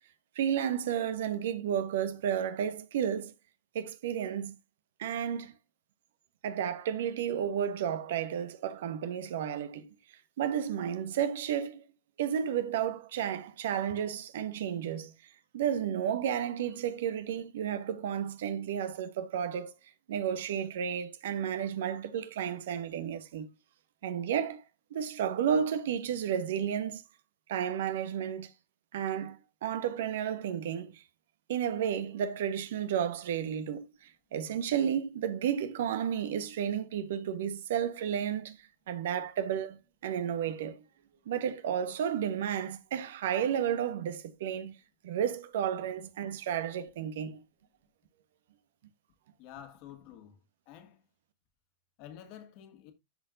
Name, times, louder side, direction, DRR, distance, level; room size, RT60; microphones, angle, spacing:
voice 1, 0.3-3.3 3.7-4.6 5.0-5.5 6.4-9.9 10.4-11.8 12.2-15.1 15.5-19.7 20.1-23.5 24.0-24.6 24.9-27.0 27.5-28.5 28.9-31.0 31.5-38.6 38.9-40.8 41.3-44.7 45.0-47.4, right 9 dB, 70° right, 1.2 m, -32 dB
voice 2, 49.4-50.4 50.7-51.0 52.0-52.9, left 10 dB, 50° left, 2.1 m, -49 dB
13.0 x 4.5 x 2.6 m
hypercardioid pair, 105°, 0 cm